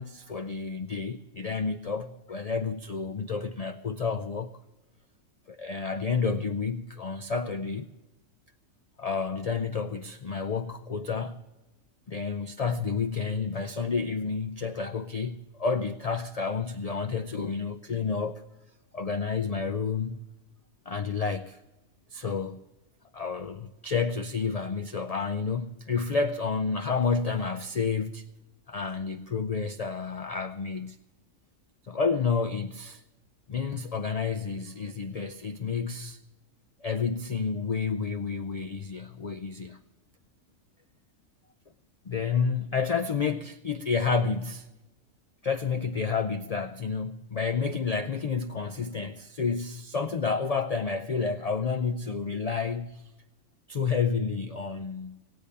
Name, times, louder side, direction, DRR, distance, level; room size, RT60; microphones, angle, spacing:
voice 1, 0.0-4.5 5.5-7.9 9.0-11.4 12.1-18.4 18.9-20.2 20.9-21.6 22.1-22.6 23.1-28.2 28.7-31.0 31.8-33.0 33.5-36.2 36.8-39.8 42.0-44.7 45.4-53.1 53.7-55.2, left 5 dB, 65° left, 0.3 m, -30 dB
17.5 x 8.5 x 6.7 m
omnidirectional pair, 1.4 m